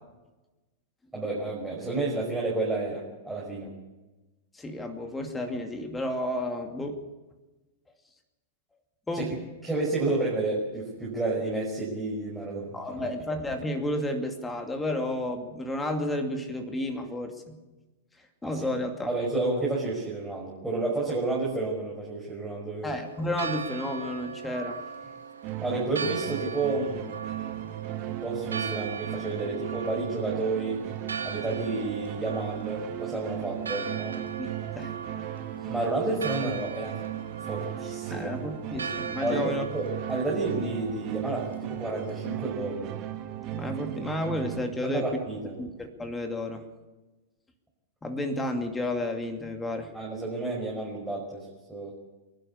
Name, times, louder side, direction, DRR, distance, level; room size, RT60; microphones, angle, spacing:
voice 1, 1.1-3.7 9.1-9.3 9.6-13.1 18.4-18.6 19.1-23.0 25.6-27.1 28.1-30.8 31.2-34.2 35.7-37.0 37.4-38.4 39.2-42.9 44.8-45.6 49.9-51.9, right 2 dB, 5° right, -4 dB, 5.4 m, -30 dB
voice 2, 4.5-7.0 9.1-9.4 12.7-17.6 18.4-19.1 22.8-24.8 34.4-35.0 38.1-39.7 43.5-45.1 45.6-46.6 48.0-49.9, left 1 dB, 10° left, 5 dB, 2.6 m, -32 dB
Church bell, 23.0-42.4, right 6 dB, 75° right, 2.0 m, -40 dB
sound 1, 25.4-44.6, right 13 dB, 35° right, 2.3 m, -36 dB
26.0 x 12.0 x 8.4 m, 1.1 s
figure-of-eight pair, 100°, 0 cm